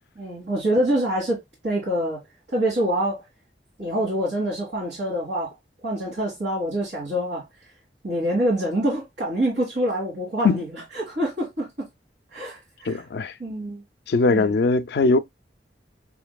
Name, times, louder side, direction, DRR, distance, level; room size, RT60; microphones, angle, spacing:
voice 1, 0.2-2.2 2.5-3.2 3.8-5.5 5.8-7.4 8.0-11.7 12.3-13.0 13.4-13.8 14.3-14.6, right 1 dB, 80° right, 1.8 m, -26 dB
voice 2, 12.9-13.3 14.1-15.2, left 3 dB, 65° left, 0.4 m, -20 dB
5.8 x 2.6 x 2.2 m
head